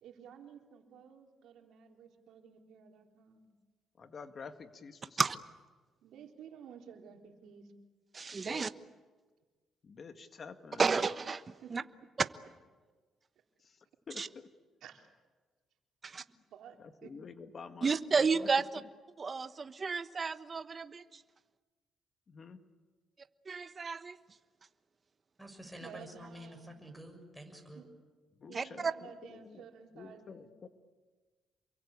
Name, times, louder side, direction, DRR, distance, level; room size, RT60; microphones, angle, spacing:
voice 1, 0.0-3.4 6.0-7.7 11.6-11.7 14.8-15.1 16.5-17.1 25.8-26.7 27.8-27.9 28.5-30.5, right 8 dB, 80° right, 3 dB, 3.5 m, -53 dB
voice 2, 4.0-5.2 8.4-8.7 9.8-10.8 13.6-14.5 16.8-18.5 18.8-18.9 22.3-22.6 28.4-29.7 29.9-30.7, left 5 dB, 45° left, 8 dB, 2.0 m, -49 dB
voice 3, 8.1-8.7 10.8-11.8 14.2-14.3 16.0-16.2 17.8-18.6 19.2-21.2 23.5-24.2 28.5-28.9, right 5 dB, 35° right, 12 dB, 1.1 m, -32 dB
voice 4, 25.4-27.8, equal, 5° right, 3 dB, 6.7 m, -49 dB
28.0 x 23.0 x 8.7 m, 1.4 s
cardioid pair, 90°, 0 cm